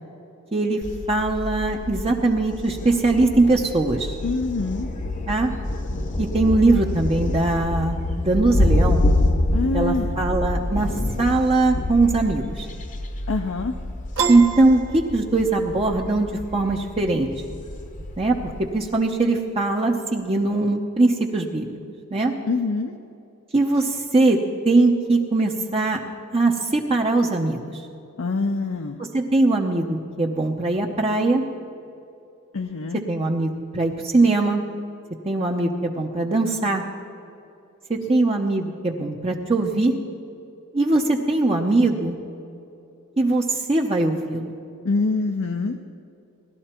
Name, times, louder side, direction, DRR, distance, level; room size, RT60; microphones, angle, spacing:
voice 1, 0.5-0.8 1.1-4.1 5.3-5.5 6.2-9.0 9.7-10.9 11.2-12.7 14.3-17.3 18.2-21.7 22.1-22.3 23.5-24.4 24.6-26.0 26.3-27.8 29.0-31.4 33.1-34.6 35.2-36.8 37.9-40.0 40.7-42.2 43.2-44.6, right 2 dB, 25° right, 0 dB, 0.7 m, -21 dB
Thunder, 0.8-18.9, left 1 dB, 35° left, 0.9 m, -27 dB
voice 2, 4.2-4.9 9.5-10.2 13.3-13.7 22.5-22.9 28.2-29.0 32.5-33.0 44.8-45.8, left 3 dB, 60° left, 4 dB, 0.6 m, -25 dB
Piano, 14.2-15.7, right 5 dB, 60° right, 1.2 m, -28 dB
18.0 x 12.0 x 4.4 m, 2.7 s
head